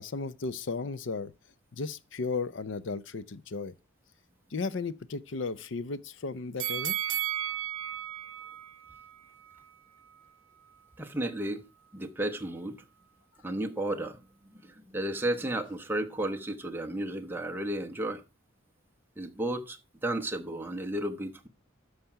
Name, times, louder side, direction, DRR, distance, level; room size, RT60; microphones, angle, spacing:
voice 1, 0.0-1.3 1.7-3.7 4.5-7.0, left 4 dB, 65° left, 0.6 m, -35 dB
sound 1, 6.6-9.7 10.1-10.2, right 13 dB, 90° right, 0.6 m, -34 dB
voice 2, 11.0-11.6 11.9-12.8 13.4-18.2 19.2-21.5, right 1 dB, 10° right, 0.9 m, -33 dB
13.5 x 5.0 x 5.7 m
head